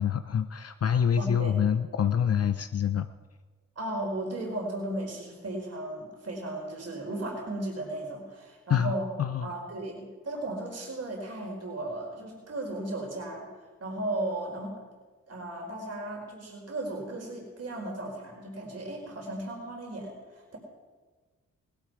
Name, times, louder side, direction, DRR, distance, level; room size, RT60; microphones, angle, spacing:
voice 1, 0.0-3.1 8.7-8.9 9.2-9.5, left 8 dB, 45° left, 9 dB, 0.7 m, -26 dB
voice 2, 1.2-1.6 3.8-9.1 9.4-13.5 13.8-14.8 15.3-20.6, right 1 dB, 50° right, -1 dB, 4.5 m, -35 dB
17.0 x 12.0 x 4.8 m, 1.4 s
supercardioid pair, 50°, 33 cm